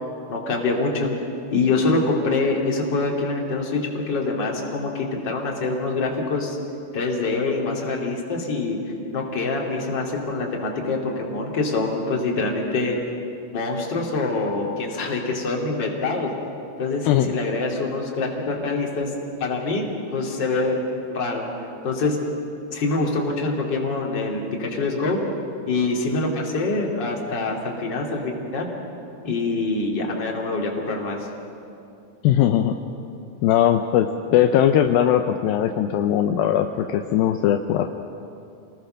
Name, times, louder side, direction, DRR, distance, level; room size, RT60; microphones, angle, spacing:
voice 1, 0.3-1.1 1.5-6.6 6.9-8.8 9.1-13.0 13.5-16.3 16.8-19.1 19.4-19.9 20.1-20.8 21.1-21.4 21.8-22.2 22.7-25.2 25.7-28.7 29.2-31.2, left 3 dB, 30° left, -1 dB, 2.9 m, -25 dB
voice 2, 32.2-32.7 33.4-37.9, left 10 dB, 80° left, 7 dB, 2.4 m, -19 dB
27.5 x 19.5 x 6.5 m, 2.6 s
omnidirectional pair, 4.4 m